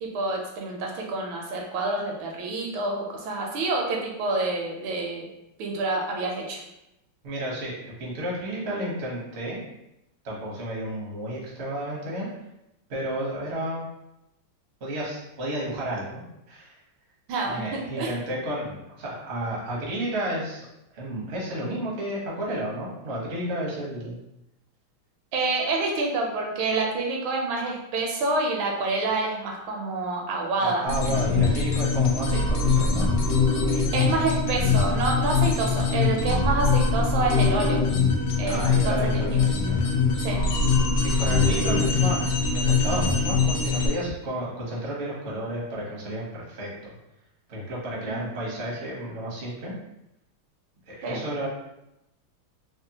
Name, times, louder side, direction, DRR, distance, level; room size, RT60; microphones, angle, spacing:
voice 1, 0.0-5.3 5.6-6.6 17.3-18.1 25.3-31.2 33.7-37.8 38.4-39.4 40.2-40.5 48.0-48.3 51.0-51.2, right 3 dB, 75° right, 0 dB, 1.3 m, -28 dB
voice 2, 7.2-9.6 10.2-12.3 12.9-13.8 14.8-16.2 16.5-16.8 17.4-20.7 20.9-24.2 30.6-33.1 38.4-39.8 40.1-40.3 41.0-46.9 47.5-49.7 50.9-51.5, right 1 dB, 55° right, -4 dB, 0.7 m, -32 dB
sound 1, 30.9-43.9, left 4 dB, 85° left, 0.8 m, -23 dB
3.5 x 2.1 x 2.7 m, 0.88 s
omnidirectional pair, 2.3 m